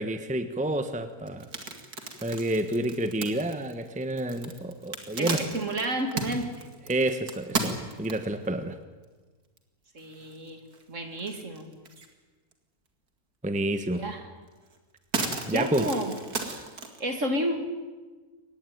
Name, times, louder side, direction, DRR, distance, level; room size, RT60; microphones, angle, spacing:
voice 1, 0.0-1.5 2.2-5.4 6.9-8.8 13.4-14.0 15.5-15.9, right 1 dB, 5° right, 9 dB, 1.1 m, -29 dB
sound 1, 1.3-8.5 9.0-9.1 9.6-9.7 10.0-10.8 11.2-12.1 12.5-12.6 14.0-14.1 14.5-17.0, right 3 dB, 75° right, 2.9 m, -35 dB
voice 2, 5.2-6.5 9.9-10.6 10.9-11.7 14.0-14.3 15.5-16.1 17.0-17.5, right 1 dB, 55° right, 6 dB, 3.0 m, -30 dB
23.5 x 19.5 x 9.4 m, 1.3 s
omnidirectional pair, 1.6 m